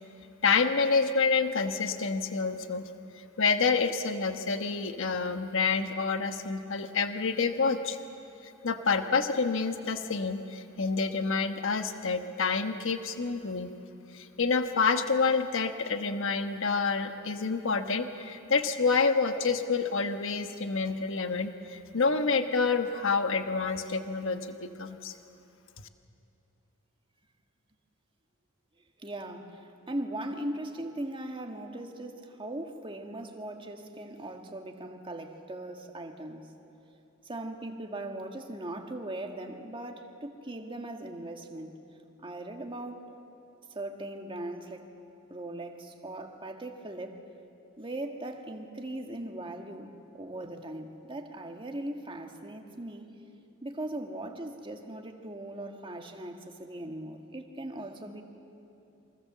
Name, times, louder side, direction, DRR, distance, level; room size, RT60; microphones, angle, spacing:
voice 1, 0.4-2.9 3.2-8.0 8.4-13.7 14.1-25.1, left 4 dB, 65° left, 7 dB, 1.2 m, -28 dB
voice 2, 29.0-36.5 37.2-41.8 42.2-43.2 43.7-44.9 45.3-47.2 47.8-53.1 53.6-58.2, right 1 dB, 25° right, 4 dB, 1.9 m, -39 dB
28.0 x 24.0 x 7.5 m, 2.8 s
head